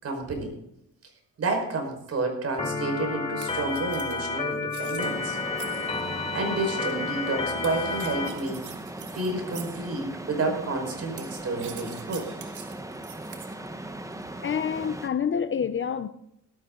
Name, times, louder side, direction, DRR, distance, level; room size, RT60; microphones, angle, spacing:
voice 1, 0.0-0.5 1.4-5.4 6.3-8.7 9.1-12.3, right 2 dB, 55° right, 5.3 m, -30 dB
Organ, 2.6-8.3, left 4 dB, 20° left, 3.2 m, -30 dB
sound 1, 3.4-6.1 7.6-9.9 11.2-13.6, right 9 dB, 75° right, 2.1 m, -45 dB
sound 2, 5.0-15.1, right 1 dB, 10° right, 1.3 m, -39 dB
voice 2, 14.2-16.1, left 7 dB, 40° left, 0.9 m, -28 dB
18.0 x 13.0 x 3.9 m
cardioid pair, 90°, 30 cm